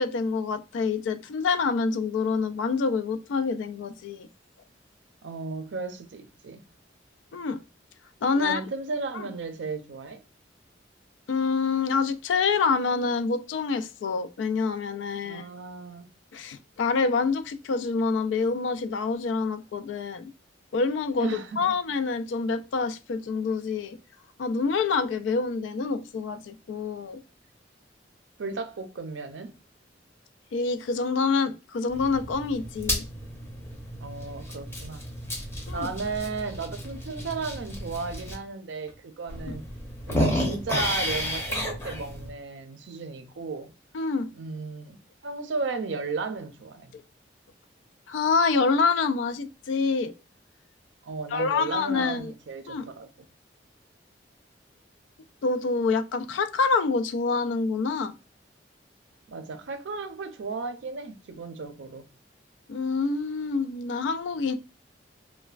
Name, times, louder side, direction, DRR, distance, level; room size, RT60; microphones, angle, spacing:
voice 1, 0.0-4.3 7.3-7.6 8.2-8.6 9.1-9.2 11.3-15.4 16.3-20.3 20.7-24.0 24.4-27.2 30.5-33.0 35.7-35.9 39.5-39.6 43.9-44.3 48.1-50.1 51.3-52.3 52.7-52.9 55.4-58.1 62.7-64.5, left 4 dB, 90° left, 0.3 m, -26 dB
voice 2, 5.2-6.6 8.4-10.2 15.2-16.1 21.2-21.6 28.4-29.5 34.0-35.0 35.7-39.7 40.1-43.7 44.3-45.0 45.2-46.9 51.0-53.1 59.3-62.1, right 4 dB, 75° right, 0.5 m, -34 dB
sound 1, 31.9-38.3 38.9-39.0 39.3-42.3, left 1 dB, 15° left, 0.6 m, -32 dB
3.1 x 2.1 x 2.3 m
head